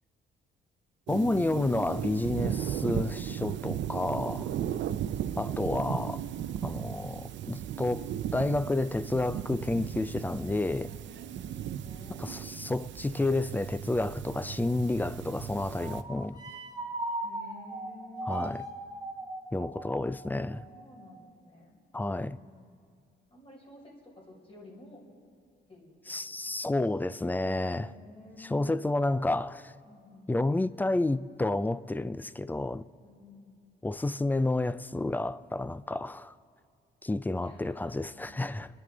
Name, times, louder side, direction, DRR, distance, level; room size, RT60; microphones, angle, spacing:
voice 1, 1.1-4.5 5.4-6.2 6.6-8.1 8.3-10.9 12.2-16.4 18.3-18.6 19.5-20.7 21.9-22.4 26.1-27.9 28.4-29.7 30.3-32.8 33.8-36.3 37.0-38.7, left 2 dB, 10° left, 0.4 m, -30 dB
sound 1, 1.1-16.0, right 10 dB, 65° right, 0.6 m, -36 dB
voice 2, 4.5-5.3 11.4-12.2 17.2-18.6 20.6-21.8 22.1-22.7 23.3-25.0 25.7-26.7 27.6-28.8 29.8-30.7 33.0-33.7 37.4-38.4, left 2 dB, 30° left, 4.7 m, -52 dB
sound 2, 15.7-21.3, right 2 dB, 20° right, 1.3 m, -39 dB
29.5 x 10.5 x 3.9 m
cardioid pair, 90°, 20 cm